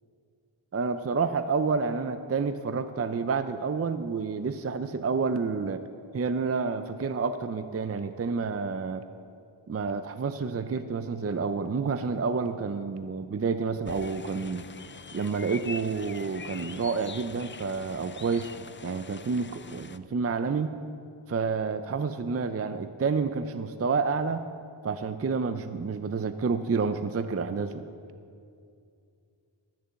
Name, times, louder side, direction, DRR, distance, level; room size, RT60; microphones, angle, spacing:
voice 1, 0.7-5.8 6.1-9.0 9.7-14.7 15.1-20.8 21.3-24.4 24.8-27.8, right 5 dB, 30° right, 10 dB, 0.5 m, -29 dB
sound 1, 13.8-20.0, left 5 dB, 25° left, 0.4 m, -44 dB
13.0 x 6.8 x 7.7 m, 2.4 s
wide cardioid pair, 75°, 48 cm